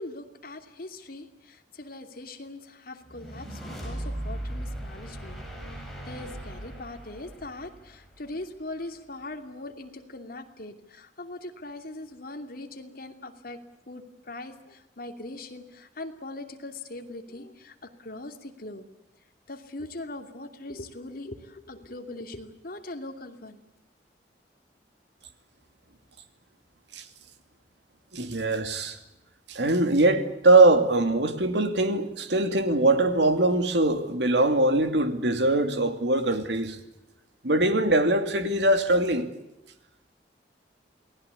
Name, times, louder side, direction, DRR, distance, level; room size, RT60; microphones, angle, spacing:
voice 1, 0.0-5.4 5.8-13.6 13.9-18.9 19.5-23.6, left 2 dB, 55° left, 2.7 m, -41 dB
sound 1, 3.1-8.4, right 1 dB, ahead, 7.7 m, -38 dB
voice 2, 28.1-29.0 29.5-36.8 37.4-39.3, right 2 dB, 70° right, 2.7 m, -22 dB
28.5 x 19.5 x 8.4 m
head